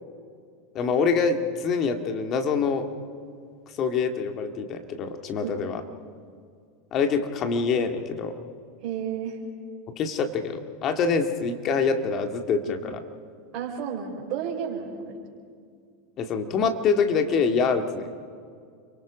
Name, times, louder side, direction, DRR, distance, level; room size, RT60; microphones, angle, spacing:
voice 1, 0.7-2.9 3.7-5.8 6.9-8.4 10.0-13.0 16.2-18.2, left 5 dB, 40° left, 6 dB, 2.1 m, -25 dB
voice 2, 8.8-9.4 13.5-15.2, right 7 dB, 55° right, -5 dB, 4.6 m, -32 dB
30.0 x 23.5 x 5.2 m, 2.2 s
hypercardioid pair, 90°, 0 cm